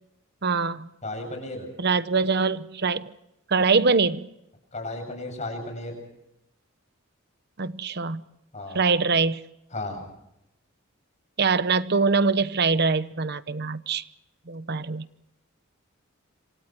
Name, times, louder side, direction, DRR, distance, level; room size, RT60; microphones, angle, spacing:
voice 1, 0.4-0.9 1.8-3.1 3.5-4.3 7.6-8.2 8.7-9.4 11.4-14.0 14.5-15.1, right 4 dB, 50° right, 1.0 m, -23 dB
voice 2, 1.0-1.7 4.7-6.0 8.5-8.8 9.7-10.0, left 2 dB, 35° left, 7.6 m, -34 dB
27.0 x 26.5 x 4.6 m
head